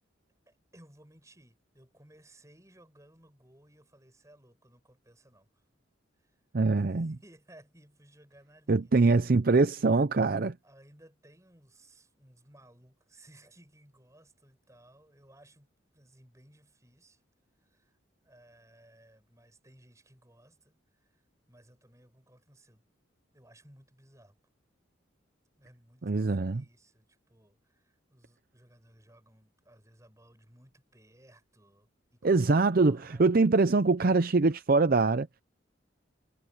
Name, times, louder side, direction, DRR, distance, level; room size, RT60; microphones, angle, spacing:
voice 1, 0.5-5.6 6.2-6.4 6.8-8.9 10.6-15.7 15.9-17.2 17.6-21.2 21.5-22.8 23.3-24.4 25.5-33.4, right 1 dB, 15° right, 6.8 m, -59 dB
voice 2, 6.5-7.2 8.7-10.6 26.0-26.6 32.2-35.4, right 3 dB, 50° right, 0.6 m, -24 dB
head